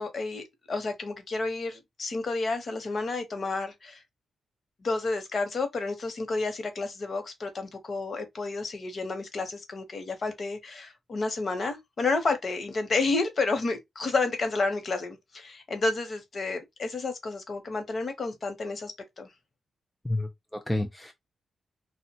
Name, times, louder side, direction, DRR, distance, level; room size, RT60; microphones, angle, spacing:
voice 1, 0.0-4.0 4.8-19.3, left 3 dB, 40° left, 0.7 m, -30 dB
voice 2, 20.0-21.1, left 1 dB, 5° left, 0.3 m, -30 dB
3.1 x 2.1 x 2.7 m
wide cardioid pair, 155°, 0 cm